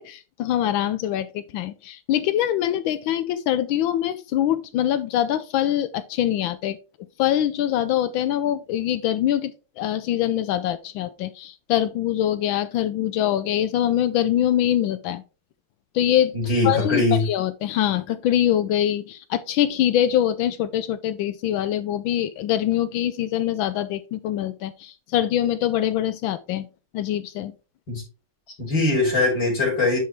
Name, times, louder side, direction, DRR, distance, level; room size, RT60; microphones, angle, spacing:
voice 1, 0.0-6.8 7.2-9.5 9.8-15.2 15.9-16.4 16.6-26.7 26.9-27.5, left 11 dB, 80° left, 1.3 m, -24 dB
voice 2, 16.3-17.3 27.9-28.0 28.6-30.0, left 2 dB, 60° left, 4.4 m, -21 dB
10.0 x 4.7 x 3.4 m
omnidirectional pair, 2.2 m